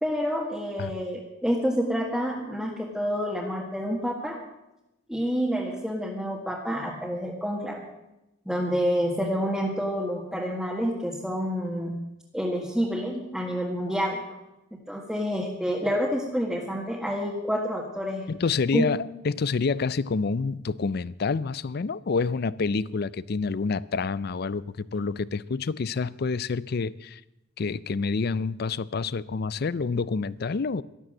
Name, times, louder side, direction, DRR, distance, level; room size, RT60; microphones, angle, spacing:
voice 1, 0.0-4.4 5.1-7.9 8.5-12.0 12.3-14.2 14.9-18.2 18.7-18.9, equal, ahead, 1.8 m, -28 dB
voice 2, 18.3-27.2 27.6-30.8, left 4 dB, 55° left, 0.5 m, -28 dB
12.5 x 12.5 x 7.7 m
head